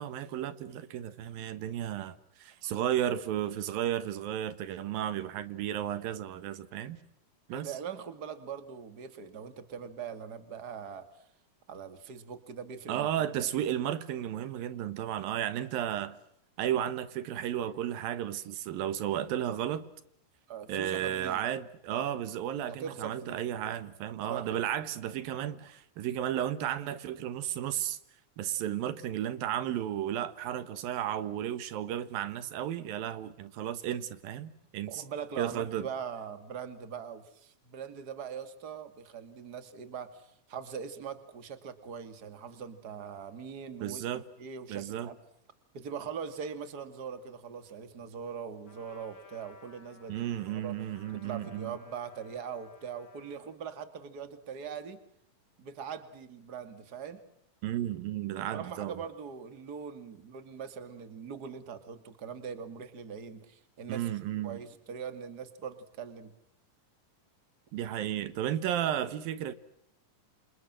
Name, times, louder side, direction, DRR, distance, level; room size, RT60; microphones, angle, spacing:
voice 1, 0.0-7.0 7.5-7.7 12.9-16.2 16.6-19.8 20.7-28.0 28.4-35.0 35.4-35.9 43.8-44.2 44.7-45.1 50.1-51.8 57.6-59.0 63.9-64.6 67.7-69.5, right 11 dB, 85° right, 3.1 m, -33 dB
voice 2, 7.5-11.1 11.7-13.4 20.5-21.5 22.8-23.4 24.3-24.6 34.9-45.2 45.7-55.0 55.6-57.2 58.5-66.3, right 7 dB, 30° right, 2.4 m, -42 dB
Trumpet, 48.6-53.6, left 5 dB, 35° left, 4.8 m, -57 dB
28.5 x 27.5 x 7.6 m
omnidirectional pair, 4.0 m